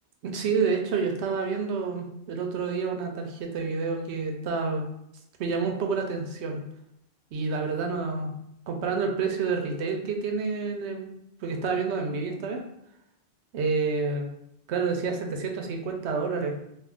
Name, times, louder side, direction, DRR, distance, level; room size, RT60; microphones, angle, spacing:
voice 1, 0.2-4.8 5.4-6.6 7.3-8.3 8.7-11.2 11.4-12.6 13.5-14.3 14.7-16.5, right 4 dB, 85° right, 3 dB, 0.9 m, -28 dB
2.4 x 2.4 x 3.4 m, 0.78 s
omnidirectional pair, 1.1 m